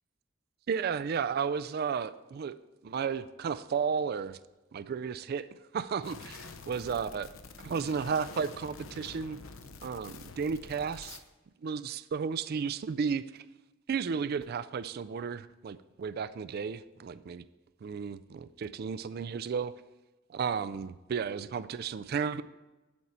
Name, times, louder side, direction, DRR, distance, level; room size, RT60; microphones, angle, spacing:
voice 1, 0.7-2.6 2.8-4.4 4.7-7.3 7.6-9.4 9.8-11.2 11.6-13.4 13.9-17.5 17.8-19.7 20.3-22.4, right 6 dB, 50° right, 15 dB, 0.3 m, -33 dB
sound 1, 6.0-11.2, left 4 dB, 85° left, 0.7 m, -47 dB
8.5 x 8.0 x 4.3 m, 1.1 s
head